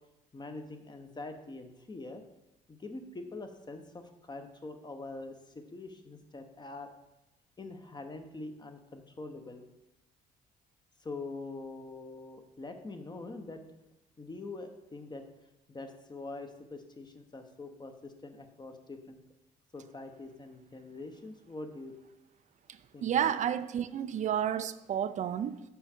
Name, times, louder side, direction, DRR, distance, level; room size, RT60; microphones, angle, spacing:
voice 1, 0.3-2.2 2.7-6.9 7.6-9.6 11.0-13.6 14.2-15.2 15.7-19.2 19.7-21.9 22.9-23.3, left 3 dB, 25° left, 0.9 m, -44 dB
voice 2, 23.0-25.6, right 9 dB, 45° right, 0.4 m, -31 dB
5.6 x 5.5 x 4.4 m
supercardioid pair, 75°, 18 cm